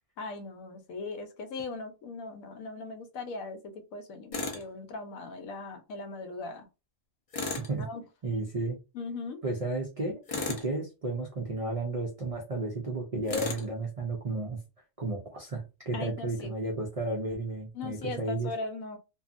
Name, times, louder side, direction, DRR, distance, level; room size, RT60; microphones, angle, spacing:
voice 1, 0.2-6.7 7.8-8.0 8.9-9.4 15.9-16.5 17.7-19.0, left 3 dB, 90° left, 7 dB, 1.0 m, -39 dB
Tools, 4.3-4.6 7.3-7.7 10.3-10.7 13.3-13.7, left 3 dB, 50° left, 0.4 m, -34 dB
voice 2, 7.6-7.9 8.2-8.8 9.4-14.6 15.0-18.5, right 2 dB, 65° right, -1 dB, 0.3 m, -33 dB
2.7 x 2.3 x 2.4 m, 0.28 s
omnidirectional pair, 1.4 m